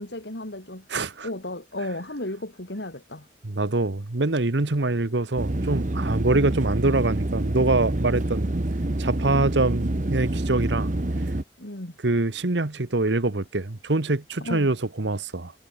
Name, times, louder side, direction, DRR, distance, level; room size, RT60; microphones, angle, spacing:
voice 1, 0.0-0.9 1.2-3.3 11.6-12.0 14.4-14.7, left 1 dB, 70° left, 3.4 m, -34 dB
voice 2, 0.9-1.3 3.4-8.5 9.0-10.9 12.0-15.5, right 2 dB, 75° right, 1.2 m, -24 dB
sound 1, 5.4-11.4, right 1 dB, 45° right, 1.0 m, -27 dB
head